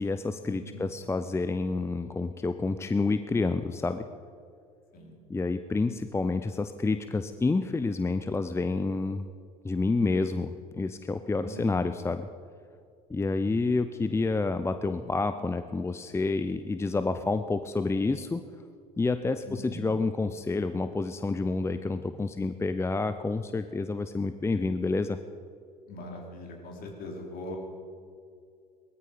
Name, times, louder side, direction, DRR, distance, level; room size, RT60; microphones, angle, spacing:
voice 1, 0.0-4.1 5.3-9.2 9.6-12.3 13.1-18.4 19.0-25.2, left 3 dB, 15° left, 10 dB, 0.7 m, -29 dB
voice 2, 11.4-11.8 19.5-19.8 25.9-27.6, left 1 dB, 50° left, 1 dB, 4.1 m, -41 dB
19.0 x 14.0 x 5.2 m, 2.4 s
hypercardioid pair, 65°, 19 cm